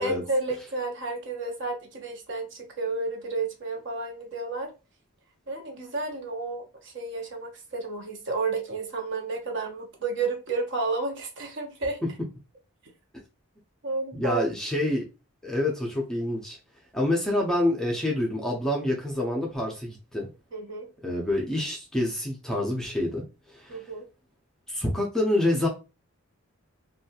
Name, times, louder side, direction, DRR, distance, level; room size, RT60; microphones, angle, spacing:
voice 1, 0.0-4.7 5.5-12.0 13.8-14.4 20.5-20.9 23.7-24.0, right 3 dB, 55° right, 2 dB, 0.7 m, -31 dB
voice 2, 14.1-15.1 15.4-16.6 16.9-20.3 21.0-23.2 23.5-23.8 24.7-25.7, left 1 dB, 5° left, -2 dB, 0.5 m, -27 dB
2.7 x 2.3 x 2.7 m, 0.30 s
head